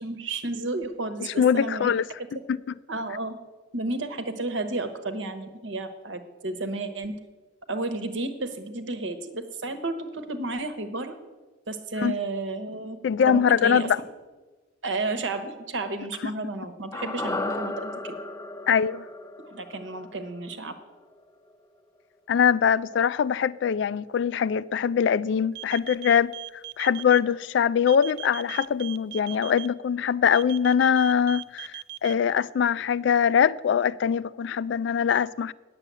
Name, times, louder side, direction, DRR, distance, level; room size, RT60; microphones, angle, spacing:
voice 1, 0.0-1.9 2.9-3.3 3.7-7.1 7.7-11.1 11.7-13.0 13.3-13.9 14.8-18.1 19.4-20.7, right 2 dB, 80° right, 1.1 m, -32 dB
voice 2, 1.2-2.0 2.5-2.6 12.0-12.1 13.0-14.0 18.7-19.0 22.3-26.3 26.8-35.5, left 7 dB, 65° left, 0.3 m, -23 dB
sound 1, 16.9-21.2 21.5-21.6, left 2 dB, 15° left, 0.5 m, -35 dB
sound 2, 25.5-27.2 27.9-29.7 30.3-32.1, right 17 dB, 55° right, 0.4 m, -38 dB
9.0 x 6.9 x 8.2 m
head